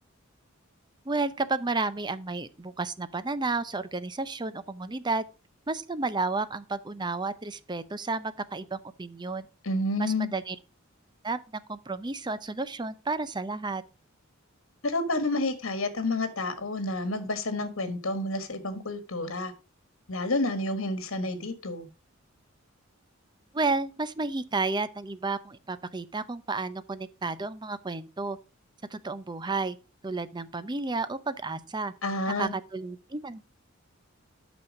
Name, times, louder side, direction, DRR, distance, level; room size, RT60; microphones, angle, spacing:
voice 1, 1.1-5.2 5.7-9.5 10.0-10.6 11.2-11.4 11.7-13.8 23.5-28.4 28.9-29.8 30.0-31.9 32.4-33.4, right 3 dB, 20° right, 0.6 m, -31 dB
voice 2, 9.6-10.3 14.8-19.5 20.1-21.9 32.0-32.5, left 2 dB, 75° left, 1.7 m, -29 dB
8.8 x 6.2 x 4.9 m
head